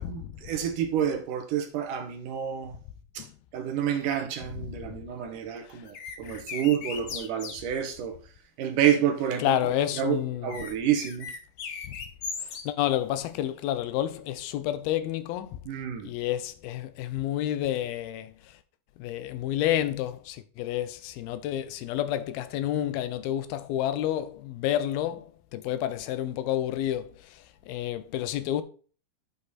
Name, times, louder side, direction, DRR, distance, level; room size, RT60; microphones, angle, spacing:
voice 1, 0.0-2.8 3.1-3.3 3.5-8.2 8.6-9.7 10.0-11.3 15.7-16.1, right 9 dB, 70° right, 2.4 m, -29 dB
sound 1, 5.8-7.6 10.5-12.6, left 5 dB, 70° left, 1.2 m, -37 dB
voice 2, 9.4-10.5 11.8-12.0 12.4-15.6 16.0-18.6 19.0-28.6, left 12 dB, 85° left, 2.7 m, -30 dB
9.9 x 5.5 x 4.2 m
omnidirectional pair, 4.2 m